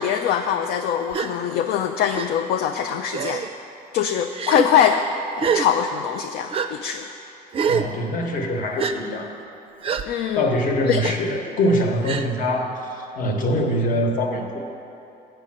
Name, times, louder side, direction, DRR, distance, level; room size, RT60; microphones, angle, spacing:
voice 1, 0.0-3.5 3.9-5.1 5.4-7.0 10.0-10.5 10.8-11.1, left 8 dB, 70° left, 6 dB, 0.4 m, -22 dB
Gasp, 1.1-1.3 2.1-2.3 3.1-3.5 4.3-4.7 5.4-5.7 6.5-6.7 7.5-7.9 8.8-8.9 9.8-10.0 11.0-11.2 12.0-12.3, right 6 dB, 35° right, 0.4 m, -24 dB
voice 2, 7.7-9.4 10.3-12.8 13.2-14.6, equal, 50° left, 3 dB, 1.1 m, -23 dB
7.7 x 5.3 x 7.4 m, 2.8 s
cardioid pair, 110°, 17 cm